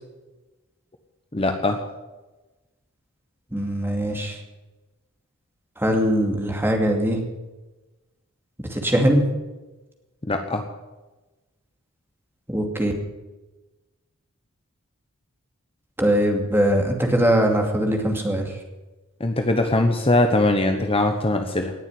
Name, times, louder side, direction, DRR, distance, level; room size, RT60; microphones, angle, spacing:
voice 1, 1.3-1.8 10.2-10.6 19.2-21.7, left 2 dB, 25° left, 5 dB, 1.1 m, -21 dB
voice 2, 3.5-4.4 5.8-7.2 8.6-9.3 12.5-12.9 16.0-18.6, equal, 10° right, 2 dB, 2.5 m, -21 dB
19.0 x 7.3 x 9.6 m, 1.1 s
head